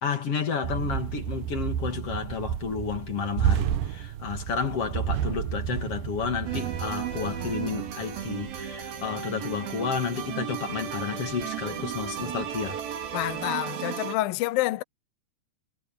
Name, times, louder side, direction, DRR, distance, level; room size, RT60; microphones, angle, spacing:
voice 1, 0.0-12.8, left 6 dB, 45° left, 2.2 m, -31 dB
sound 1, 0.6-10.4 10.7-13.5, right 9 dB, 75° right, 2.1 m, -32 dB
sound 2, 6.4-14.2, right 9 dB, 55° right, 4.3 m, -34 dB
voice 2, 13.1-14.8, left 17 dB, 75° left, 2.2 m, -28 dB
omnidirectional pair, 5.2 m